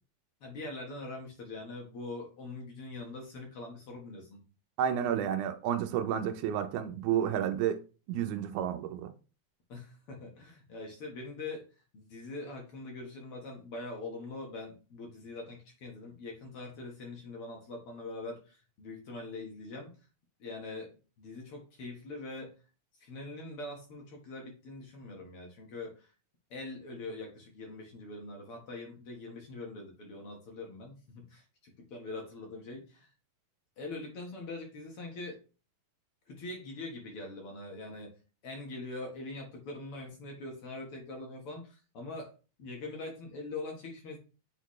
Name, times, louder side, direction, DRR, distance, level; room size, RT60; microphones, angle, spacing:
voice 1, 0.4-4.4 9.7-11.7 11.9-19.9 20.4-22.5 23.0-26.1 26.5-33.1 33.8-35.4 36.3-38.1 38.4-42.3 42.6-44.2, left 2 dB, 55° left, 2.0 m, -43 dB
voice 2, 4.8-7.8 8.1-9.1, right 9 dB, 85° right, 2.1 m, -31 dB
8.1 x 4.1 x 3.1 m
omnidirectional pair, 3.4 m